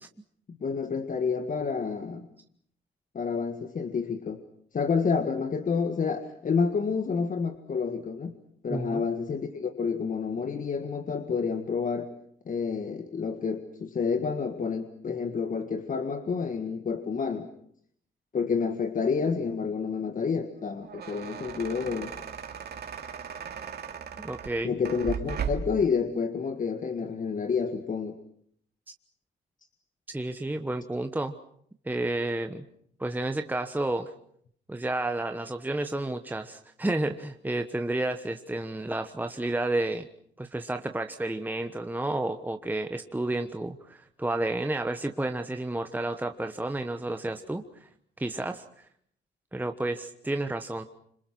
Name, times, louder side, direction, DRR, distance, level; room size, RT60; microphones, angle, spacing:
voice 1, 0.5-2.3 3.1-4.4 4.7-8.3 8.6-12.1 12.5-17.5 18.3-22.1 24.6-28.2, left 5 dB, 40° left, 8 dB, 1.8 m, -29 dB
voice 2, 8.7-9.0 24.2-24.8 30.1-31.4 31.8-32.7 33.0-34.1 34.7-40.1 40.4-47.9 48.2-48.9 49.5-50.8, right 2 dB, 10° right, 7 dB, 1.2 m, -31 dB
sound 1, 20.6-25.8, right 6 dB, 55° right, 2.6 m, -37 dB
26.5 x 25.5 x 6.1 m, 0.66 s
cardioid pair, 90°, 20 cm